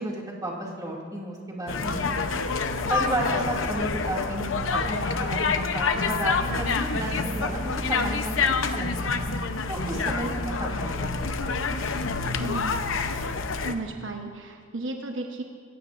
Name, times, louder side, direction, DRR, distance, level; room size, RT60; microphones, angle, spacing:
voice 1, 0.0-2.2 2.9-9.1 9.7-11.5, right 1 dB, 20° right, -3 dB, 2.5 m, -33 dB
sound 1, 1.7-13.7, left 4 dB, 85° left, 0.8 m, -27 dB
voice 2, 10.0-10.3 12.4-12.8 13.5-15.4, right 2 dB, 70° right, 2 dB, 1.1 m, -34 dB
25.0 x 15.5 x 2.6 m, 2.1 s
head